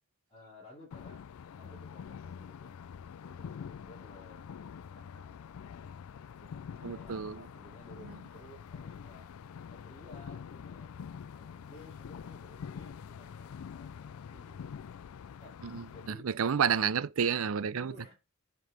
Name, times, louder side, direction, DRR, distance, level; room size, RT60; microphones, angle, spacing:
voice 1, 0.3-1.3 1.6-2.8 3.2-5.7 6.4-9.3 9.7-14.8 15.4-16.3 16.9-17.0 17.8-18.1, left 1 dB, 25° left, 2.8 m, -56 dB
sound 1, 0.9-16.1, left 7 dB, 70° left, 0.4 m, -46 dB
voice 2, 6.8-7.4 15.6-17.9, right 7 dB, 70° right, 0.5 m, -30 dB
6.1 x 5.4 x 4.7 m
head